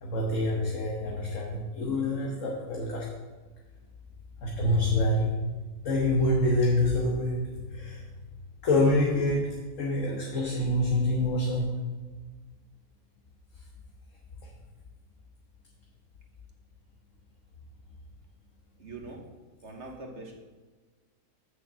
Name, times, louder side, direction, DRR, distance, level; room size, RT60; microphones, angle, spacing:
voice 1, 0.0-3.1 4.4-5.4 5.8-8.0 8.6-11.8 13.6-13.7 14.4-14.5, left 1 dB, 55° left, -1 dB, 1.5 m, -26 dB
voice 2, 18.8-19.3 19.6-20.4, right 2 dB, 50° right, 0 dB, 1.3 m, -42 dB
6.6 x 6.4 x 7.3 m, 1.4 s
omnidirectional pair, 1.6 m